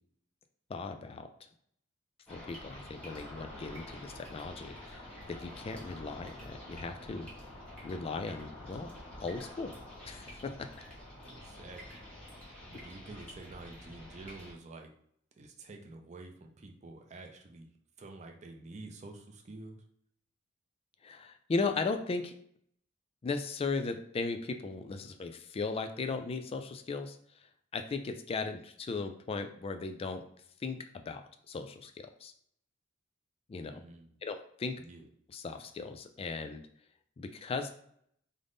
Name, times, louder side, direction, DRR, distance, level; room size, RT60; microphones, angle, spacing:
voice 1, 0.7-1.3 2.3-7.3 7.8-8.9 9.2-9.7 10.0-10.7 21.0-22.4 23.2-30.3 30.6-31.2 31.5-32.3 33.5-33.8 34.2-34.8 35.3-36.6 37.2-37.7, left 4 dB, 30° left, 7 dB, 0.3 m, -37 dB
sound 1, 2.3-14.5, left 1 dB, 5° left, 1.3 m, -48 dB
voice 2, 11.2-12.0 12.7-14.9 15.4-17.7 18.0-19.8 33.7-34.1 34.8-35.1, right 2 dB, 35° right, 3 dB, 0.5 m, -49 dB
3.5 x 2.1 x 3.8 m, 0.67 s
head